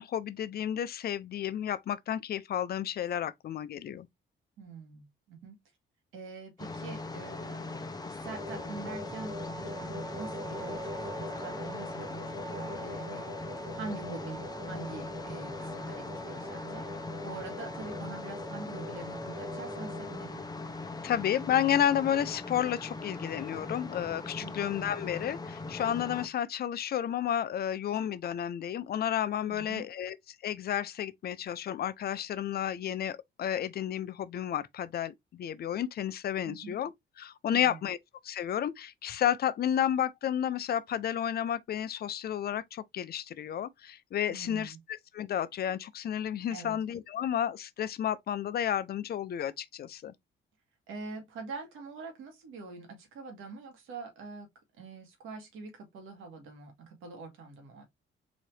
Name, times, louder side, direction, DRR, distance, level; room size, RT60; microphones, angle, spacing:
voice 1, 0.0-4.1 21.0-30.2 30.4-36.9 37.2-38.0 38.2-44.7 45.1-50.1, left 10 dB, 55° left, 0.5 m, -31 dB
voice 2, 4.6-5.6 6.1-7.7 8.1-10.9 11.2-13.3 13.7-20.4 24.4-24.5 29.5-29.9 36.5-36.8 37.5-37.9 44.3-44.8 46.5-46.8 50.9-54.5 54.8-57.8, right 4 dB, 85° right, 1.7 m, -44 dB
sound 1, 6.6-26.3, left 3 dB, 20° left, 0.8 m, -41 dB
sound 2, 8.2-20.4, equal, 15° right, 1.5 m, -42 dB
4.0 x 2.8 x 3.2 m
cardioid pair, 90°, 20 cm